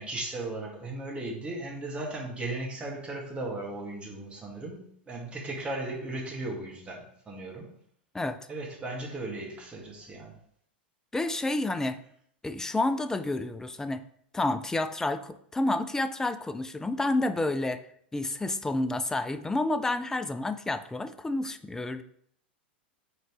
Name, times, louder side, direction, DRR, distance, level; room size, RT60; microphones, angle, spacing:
voice 1, 0.0-7.7 8.5-10.3, right 2 dB, 20° right, -2 dB, 2.0 m, -36 dB
voice 2, 11.1-12.0 12.4-14.0 14.3-17.8 18.1-22.0, left 2 dB, 10° left, 11 dB, 0.4 m, -29 dB
5.5 x 3.9 x 4.8 m, 0.67 s
hypercardioid pair, 95°, 6 cm